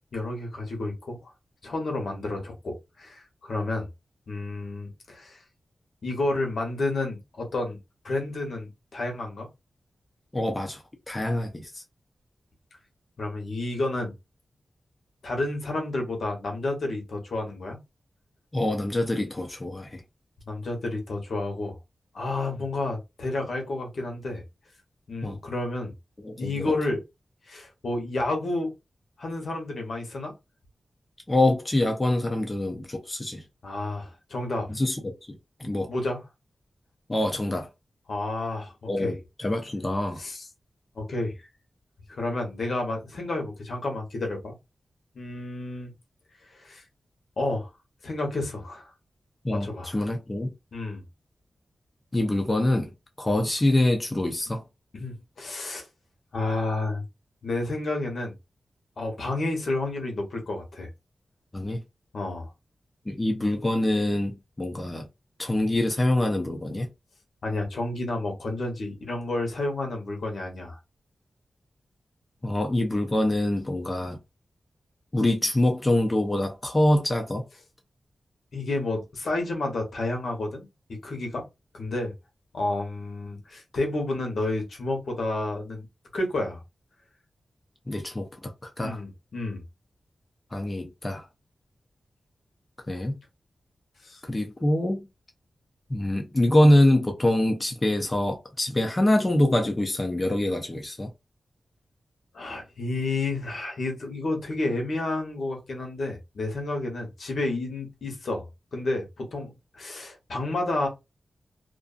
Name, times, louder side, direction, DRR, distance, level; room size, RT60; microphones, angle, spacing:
voice 1, 0.1-1.3 1.6-3.9 4.3-5.4 6.0-7.8 8.0-9.5 13.2-14.1 15.2-17.8 20.5-21.8 22.1-24.4 25.1-25.9 26.4-27.0 27.5-28.7 29.2-30.3 33.6-34.7 35.9-36.2 38.1-39.1 40.2-40.5 40.9-41.3 42.1-44.5 45.1-45.9 46.5-46.8 47.4-47.7 48.0-48.9 49.5-50.0 50.7-51.0 54.9-55.9 56.3-57.0 57.4-58.3 59.0-60.9 62.1-62.5 67.4-70.8 78.5-81.4 81.7-82.1 82.5-85.9 86.1-86.6 88.8-89.6 94.0-94.2 102.3-110.9, left 2 dB, 70° left, 1.0 m, -30 dB
voice 2, 10.3-11.8 18.5-20.0 25.2-25.4 26.2-26.7 31.3-33.4 34.7-35.2 35.6-35.9 37.1-37.7 38.9-40.2 49.4-50.5 52.1-52.9 53.2-54.6 61.5-61.8 63.1-65.1 65.4-66.9 72.4-74.2 75.1-77.4 87.9-89.0 90.5-91.2 92.9-93.2 94.2-95.1 95.9-101.1, left 1 dB, 20° left, 0.5 m, -25 dB
2.5 x 2.3 x 2.4 m
wide cardioid pair, 105°, 0 cm